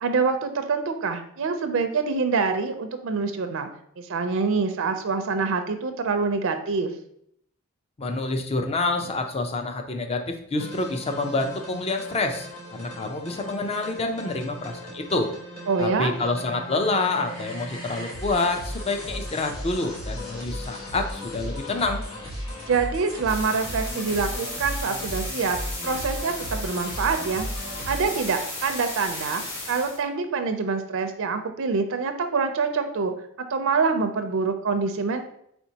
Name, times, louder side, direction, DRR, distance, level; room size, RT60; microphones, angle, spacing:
voice 1, 0.0-3.7 4.0-6.9 15.7-16.1 22.7-25.6 25.8-27.5 27.9-29.4 29.7-33.1 33.5-35.3, right 4 dB, 70° right, 7 dB, 0.5 m, -25 dB
voice 2, 8.0-15.3 15.8-22.0, left 2 dB, 30° left, 5 dB, 0.5 m, -27 dB
sound 1, 10.6-28.2, equal, 85° left, 1.5 m, -36 dB
sound 2, 23.3-30.0, left 2 dB, 60° left, 1.3 m, -35 dB
4.4 x 4.3 x 2.8 m, 0.70 s
head